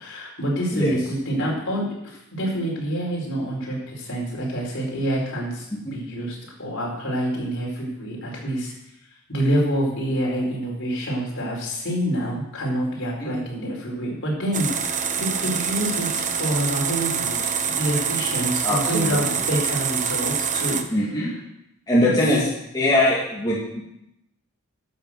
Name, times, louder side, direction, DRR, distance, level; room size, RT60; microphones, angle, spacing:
voice 1, 0.0-8.7 9.3-21.0 22.0-22.1, right 1 dB, 55° left, -3 dB, 4.7 m, -27 dB
sound 1, 14.5-20.8, right 7 dB, 35° right, 0.8 m, -25 dB
voice 2, 18.6-19.2 20.9-21.3 21.9-22.4 22.7-23.8, left 1 dB, 15° left, -6 dB, 2.3 m, -21 dB
12.0 x 7.0 x 7.8 m, 0.83 s
head